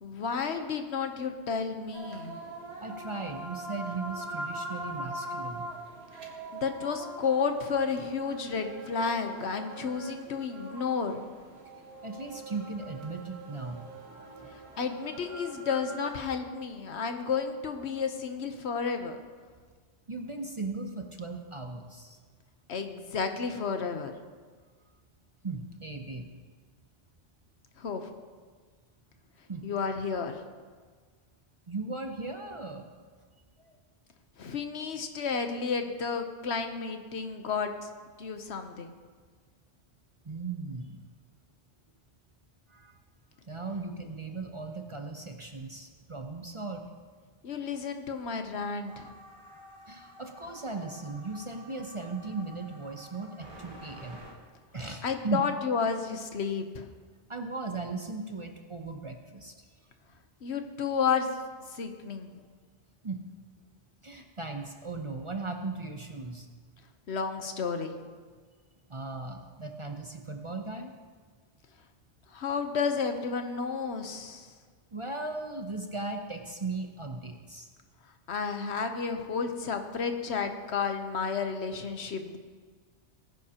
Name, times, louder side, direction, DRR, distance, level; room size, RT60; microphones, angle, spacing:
voice 1, 0.0-2.4 6.5-11.2 14.8-19.2 22.7-24.1 27.8-28.1 29.6-30.4 34.4-37.9 38.2-38.9 47.4-49.1 55.0-56.9 60.4-61.3 61.7-62.3 67.1-67.9 72.3-74.5 78.3-82.4, left 5 dB, 75° left, 6 dB, 1.2 m, -31 dB
sound 1, 1.9-16.1, right 2 dB, 70° right, 1.5 m, -42 dB
voice 2, 2.8-5.7 12.0-15.0 20.1-22.2 25.4-26.3 29.5-29.7 31.7-32.9 33.6-33.8 40.2-41.0 42.7-42.9 43.5-46.9 49.3-54.2 54.7-55.4 57.3-59.6 63.0-63.2 64.0-66.5 68.9-70.9 74.9-77.7, right 3 dB, 30° right, 4 dB, 0.7 m, -37 dB
sound 2, 48.9-54.3, equal, 50° right, 2.0 m, -51 dB
18.5 x 10.5 x 2.9 m, 1.6 s
omnidirectional pair, 1.1 m